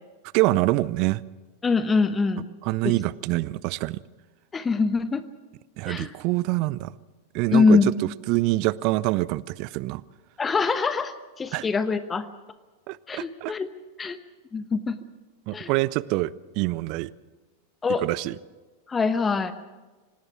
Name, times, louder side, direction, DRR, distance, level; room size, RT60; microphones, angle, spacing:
voice 1, 0.3-1.2 2.6-4.0 5.8-6.9 7.3-7.8 8.3-10.0 11.5-11.7 12.9-13.5 15.5-17.1 18.0-18.4, right 19 dB, 45° right, 22 dB, 0.6 m, -25 dB
voice 2, 1.6-2.5 2.8-2.9 4.5-5.2 5.9-6.1 7.5-7.9 10.4-12.2 13.1-13.7 14.0-14.2 14.5-14.9 15.5-15.7 17.8-18.0 18.9-19.5, left 4 dB, 15° left, 12 dB, 1.0 m, -23 dB
25.5 x 18.5 x 6.1 m, 1.3 s
figure-of-eight pair, 90°, 0 cm